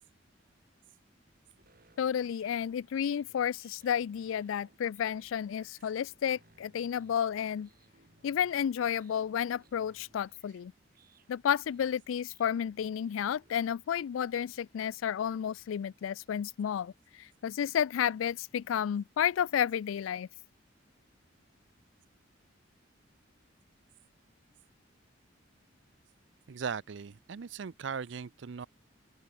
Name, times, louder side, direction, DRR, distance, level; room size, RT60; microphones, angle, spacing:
sound 1, 1.6-13.7, right 3 dB, 50° right, 6.7 m, -65 dB
voice 1, 2.0-7.7 8.2-10.7 11.3-16.9 17.2-20.3, left 8 dB, 90° left, 0.3 m, -31 dB
voice 2, 26.5-28.7, right 6 dB, 65° right, 0.5 m, -38 dB
open air
head